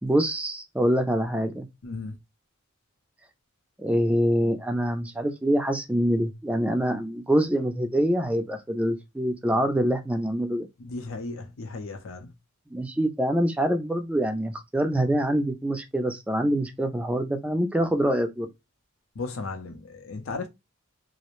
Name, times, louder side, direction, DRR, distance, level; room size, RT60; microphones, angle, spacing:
voice 1, 0.0-1.7 3.8-10.7 12.7-18.5, equal, 5° right, 0.3 m, -25 dB
voice 2, 1.8-2.2 10.8-12.3 19.2-20.5, left 3 dB, 70° left, 0.5 m, -35 dB
2.5 x 2.0 x 2.9 m
head